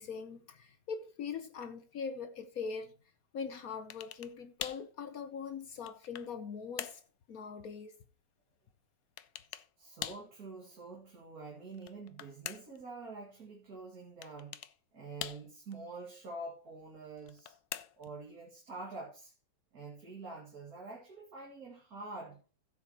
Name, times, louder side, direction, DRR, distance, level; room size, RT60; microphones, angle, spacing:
voice 1, 0.0-3.0 3.3-7.0 7.3-8.0, left 6 dB, 60° left, 1.2 m, -42 dB
sound 1, 3.9-4.4 4.6-4.9 5.5-6.4 6.8-7.1 9.2-9.7 10.0-10.3 11.7-12.8 14.2-14.8 15.2-15.7 17.2-18.2, left 12 dB, 90° left, 1.4 m, -43 dB
voice 2, 9.8-14.6 14.9-17.6 18.0-19.3 19.7-22.4, right 3 dB, 55° right, 2.7 m, -46 dB
15.5 x 7.9 x 2.9 m
omnidirectional pair, 1.9 m